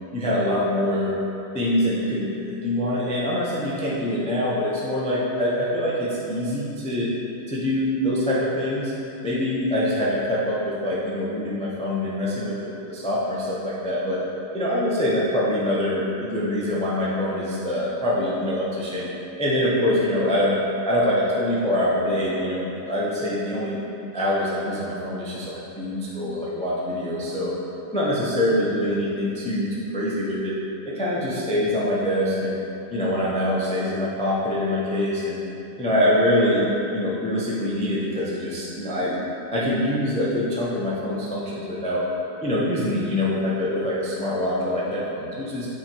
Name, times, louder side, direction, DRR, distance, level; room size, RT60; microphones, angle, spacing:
voice 1, 0.1-1.1 1.5-7.1 7.5-8.9 9.2-14.2 14.5-19.1 19.4-20.6 20.8-23.8 24.1-27.5 27.9-30.5 30.8-32.6 32.9-35.4 35.8-39.2 39.5-42.0 42.4-45.7, left 1 dB, 10° left, -7 dB, 0.4 m, -24 dB
8.5 x 3.0 x 4.6 m, 2.8 s
omnidirectional pair, 2.0 m